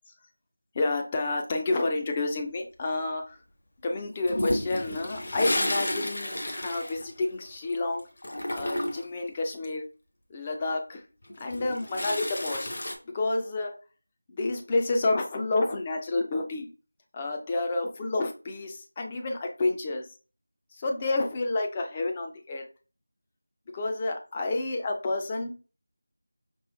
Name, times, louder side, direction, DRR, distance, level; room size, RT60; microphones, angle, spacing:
voice 1, 0.7-3.4 3.8-8.0 8.5-9.9 10.3-11.0 11.4-12.7 13.1-13.7 14.4-16.7 17.1-20.0 20.8-22.7 23.7-25.5, left 2 dB, 15° left, 3 dB, 0.4 m, -29 dB
Toilet flush, 4.3-7.7 8.0-9.2 11.2-13.0, left 1 dB, 35° left, 0.8 m, -31 dB
5.3 x 3.0 x 3.1 m, 0.35 s
figure-of-eight pair, 175°, 0 cm